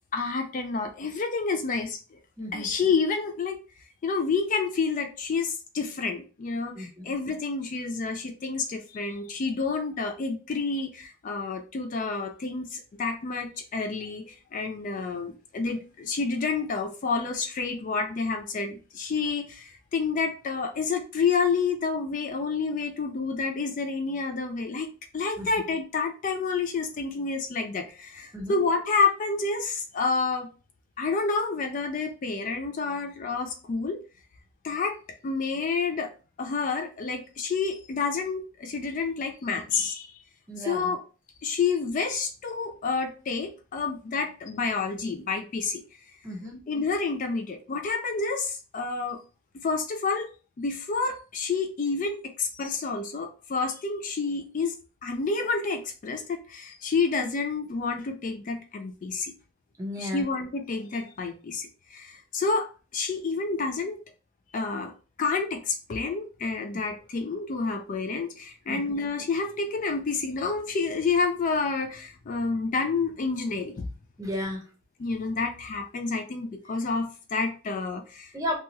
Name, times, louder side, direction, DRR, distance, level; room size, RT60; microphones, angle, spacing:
voice 1, 0.1-2.0 2.5-3.6 4.0-30.5 31.0-34.0 34.6-35.0 35.2-36.1 36.4-40.1 40.6-41.0 41.4-45.8 46.7-49.2 49.5-50.3 50.6-59.3 60.0-64.0 64.5-64.9 65.2-73.8 75.0-78.3, left 4 dB, 40° left, 6 dB, 0.3 m, -29 dB
voice 2, 2.4-2.7 6.8-7.0 25.4-25.5 28.3-28.6 40.5-40.9 46.2-46.6 59.8-60.2 68.7-69.0 74.2-74.6 78.3-78.6, left 1 dB, 15° right, 0 dB, 0.8 m, -33 dB
2.9 x 2.3 x 2.9 m, 0.34 s
head